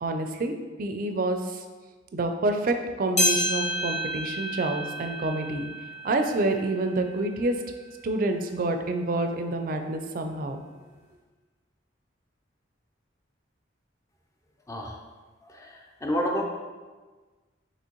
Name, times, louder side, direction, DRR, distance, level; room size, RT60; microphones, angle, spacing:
voice 1, 0.0-1.6 2.1-5.7 6.0-7.6 8.0-10.6, right 2 dB, 45° right, 6 dB, 0.4 m, -28 dB
sound 1, 3.2-7.8 8.3-8.4 9.2-9.3 10.2-10.3, equal, 35° left, 1.0 m, -30 dB
voice 2, 14.7-15.0 15.4-16.4, equal, 15° left, 0 dB, 0.5 m, -30 dB
6.2 x 2.9 x 3.0 m, 1.3 s
head